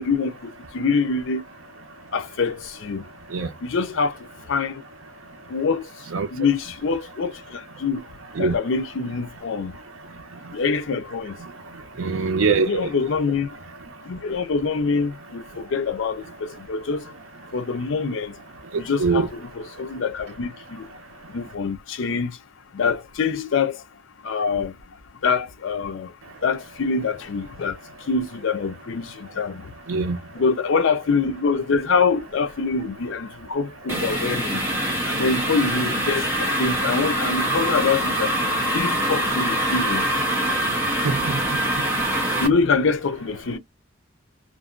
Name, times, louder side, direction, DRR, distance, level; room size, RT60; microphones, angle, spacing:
voice 1, 0.0-1.4 2.1-3.0 3.6-4.1 4.5-4.7 5.5-5.8 6.3-8.0 8.4-9.7 10.5-11.3 12.6-13.5 14.1-16.2 16.7-17.0 17.5-18.3 18.8-20.8 21.3-22.3 22.7-23.8 24.2-24.7 25.2-26.1 26.4-27.8 28.1-29.6 30.3-34.6 35.1-38.3 38.7-40.1 42.4-43.6, left 5 dB, 65° left, 0.5 m, -24 dB
voice 2, 12.0-12.8 19.0-19.3 29.9-30.2 41.0-41.4, right 4 dB, 80° right, 0.5 m, -22 dB
sound 1, 33.9-42.5, right 1 dB, 10° right, 0.7 m, -24 dB
2.5 x 2.1 x 2.4 m
head